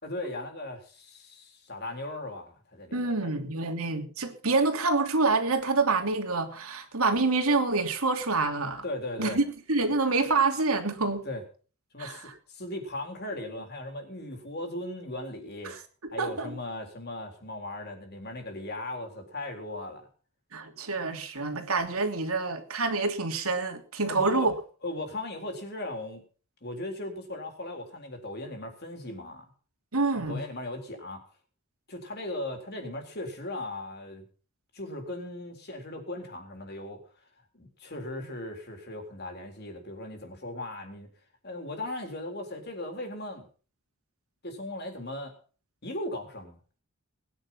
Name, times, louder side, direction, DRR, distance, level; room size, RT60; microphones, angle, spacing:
voice 1, 0.0-3.3 8.8-9.4 11.2-11.4 11.9-15.7 16.1-20.1 24.1-24.5 24.8-26.2 26.6-29.4 30.2-31.2 31.9-34.2 34.7-37.0 37.5-41.1 41.4-43.5 44.4-45.3 45.8-46.6, left 1 dB, 50° left, 3.9 m, -38 dB
voice 2, 2.9-8.8 9.2-9.4 9.7-11.2 12.0-12.2 15.6-15.8 16.2-16.6 20.5-24.5 29.9-30.4, right 3 dB, 85° right, 3.0 m, -27 dB
20.0 x 10.0 x 5.7 m
head